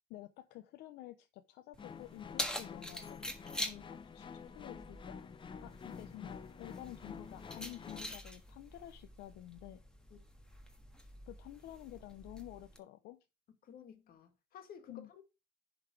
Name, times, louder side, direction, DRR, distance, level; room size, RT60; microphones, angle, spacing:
voice 1, 0.1-4.3 4.5-5.2 5.6-9.8 11.3-13.3 14.9-15.1, left 15 dB, 85° left, 0.6 m, -51 dB
Keys jangling, 1.7-12.8, equal, 5° left, 1.4 m, -46 dB
sound 1, 1.8-8.2, left 6 dB, 30° left, 0.6 m, -49 dB
voice 2, 13.6-15.2, left 7 dB, 60° left, 1.9 m, -54 dB
10.5 x 4.0 x 4.7 m
cardioid pair, 110°, 17 cm